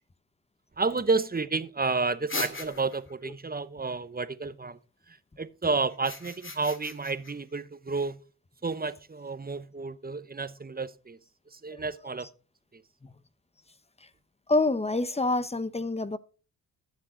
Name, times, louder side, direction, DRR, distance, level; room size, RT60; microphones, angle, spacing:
voice 1, 0.8-4.8 5.1-8.2 8.6-11.2 11.5-12.3 12.7-12.8, right 3 dB, 25° right, 0.8 m, -31 dB
sound 1, 2.3-3.1 5.9-7.3, left 3 dB, 30° left, 2.1 m, -37 dB
voice 2, 14.5-16.2, left 2 dB, 15° left, 0.9 m, -26 dB
13.0 x 7.3 x 3.9 m
cardioid pair, 55°, 39 cm